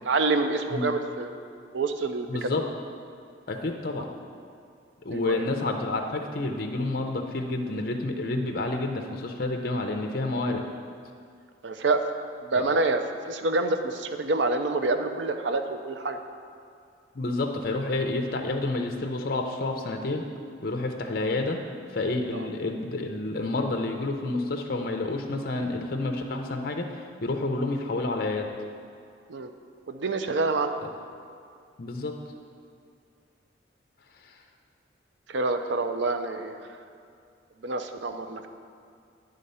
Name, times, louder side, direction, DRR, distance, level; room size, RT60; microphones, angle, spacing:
voice 1, 0.0-1.4 1.7-2.5 5.1-5.5 11.6-12.0 12.4-13.0 13.3-16.2 22.3-22.5 29.3-29.5 29.9-30.7 35.3-36.6 37.6-38.5, right 3 dB, 75° right, 8 dB, 0.5 m, -27 dB
voice 2, 2.3-2.6 3.5-4.1 5.0-10.6 12.6-12.7 17.1-20.3 20.6-21.6 21.9-28.5 30.8-30.9 31.8-32.1 34.2-34.3, left 2 dB, 50° left, 3 dB, 0.6 m, -29 dB
10.5 x 3.7 x 5.5 m, 2.3 s
head